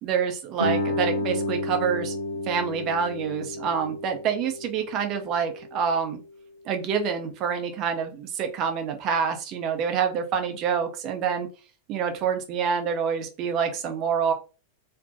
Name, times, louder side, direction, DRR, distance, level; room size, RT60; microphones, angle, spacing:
voice 1, 0.0-2.2 2.5-6.2 6.7-11.5 11.9-14.3, right 7 dB, 35° right, 5 dB, 0.5 m, -27 dB
Guitar, 0.6-6.0, left 1 dB, 85° right, 0.6 m, -31 dB
2.5 x 2.1 x 2.4 m, 0.35 s
figure-of-eight pair, 90°, 0 cm